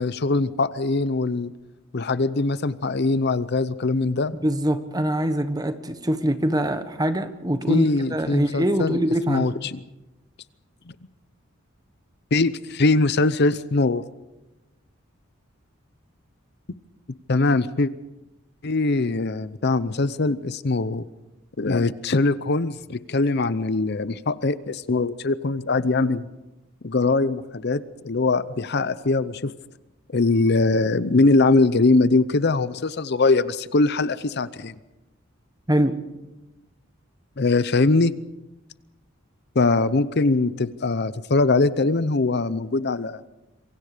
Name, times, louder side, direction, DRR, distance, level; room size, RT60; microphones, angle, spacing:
voice 1, 0.0-1.5 1.9-4.3 7.7-9.0 9.3-9.8 12.3-14.0 17.3-17.9 18.6-21.0 21.6-26.3 26.8-29.5 30.1-34.7 37.4-38.1 39.5-43.2, left 3 dB, 55° left, 16 dB, 0.7 m, -22 dB
voice 2, 4.4-9.5 35.7-36.0, right 1 dB, 20° right, 10 dB, 1.4 m, -24 dB
26.5 x 24.0 x 5.1 m, 1.0 s
head